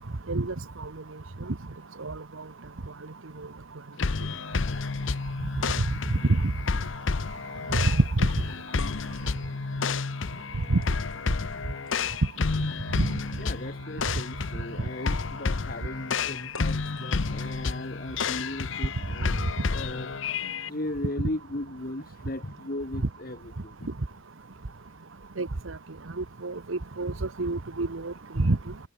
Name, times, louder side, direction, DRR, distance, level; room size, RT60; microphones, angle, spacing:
sound 1, 4.0-20.7, left 4 dB, 70° left, 0.8 m, -30 dB
sound 2, 8.8-12.8 14.0-14.2 16.5-18.6, left 4 dB, 90° left, 5.4 m, -48 dB
voice 1, 13.4-19.3 19.7-23.7, left 1 dB, 45° left, 1.5 m, -37 dB
voice 2, 26.2-27.1 27.4-28.6, right 2 dB, 75° right, 1.1 m, -28 dB
head